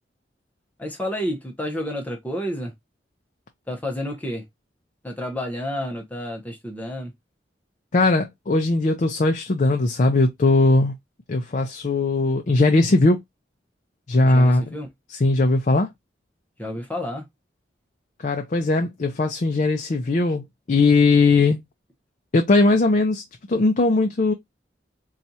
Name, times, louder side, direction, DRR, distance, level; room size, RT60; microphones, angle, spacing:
voice 1, 0.8-2.7 3.7-4.4 5.0-7.1 14.2-14.9 16.6-17.3, equal, 10° left, 0.7 m, -30 dB
voice 2, 7.9-11.0 11.3-13.2 14.1-14.6 15.1-15.9 18.2-21.6 22.3-23.2 23.5-24.3, left 2 dB, 45° left, 0.5 m, -19 dB
4.2 x 2.4 x 2.6 m
head